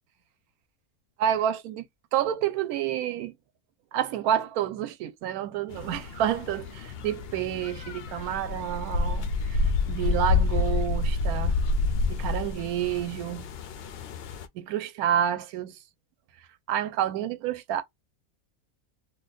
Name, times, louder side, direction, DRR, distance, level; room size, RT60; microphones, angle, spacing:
voice 1, 1.2-1.9 2.1-3.3 3.9-11.6 12.1-13.5 14.5-15.8 16.7-17.8, right 10 dB, 80° right, 1.0 m, -29 dB
sound 1, 5.7-14.5, left 3 dB, 70° left, 0.5 m, -28 dB
2.7 x 2.2 x 3.8 m
omnidirectional pair, 1.5 m